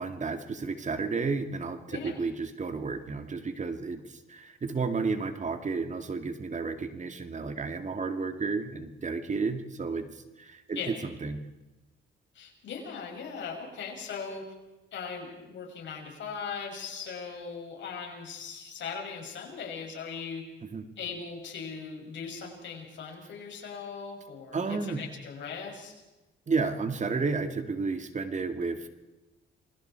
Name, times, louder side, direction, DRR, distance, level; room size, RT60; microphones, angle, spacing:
voice 1, 0.0-11.4 20.7-20.9 24.5-25.1 26.5-28.9, right 4 dB, 35° right, 7 dB, 2.2 m, -32 dB
voice 2, 12.3-14.4 14.9-20.4 21.0-25.9, left 5 dB, 65° left, 0 dB, 7.3 m, -39 dB
29.0 x 24.5 x 4.6 m, 1.1 s
cardioid pair, 90°, 20 cm